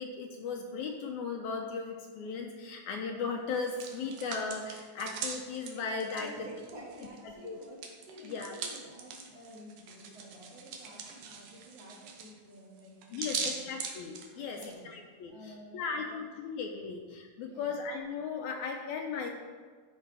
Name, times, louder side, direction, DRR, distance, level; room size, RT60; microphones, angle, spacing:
voice 1, 0.0-6.5 7.2-7.6 8.2-8.5 13.1-14.6 14.8-19.3, left 5 dB, 80° left, 2 dB, 1.9 m, -37 dB
Hands, 3.5-7.2 7.5-14.7, right 5 dB, 75° right, 2.4 m, -41 dB
voice 2, 6.1-13.7 14.3-14.9 15.3-16.4 16.8-16.9 17.4-17.7, equal, 55° right, -6 dB, 2.9 m, -50 dB
12.5 x 5.4 x 3.3 m, 1.5 s
omnidirectional pair, 3.7 m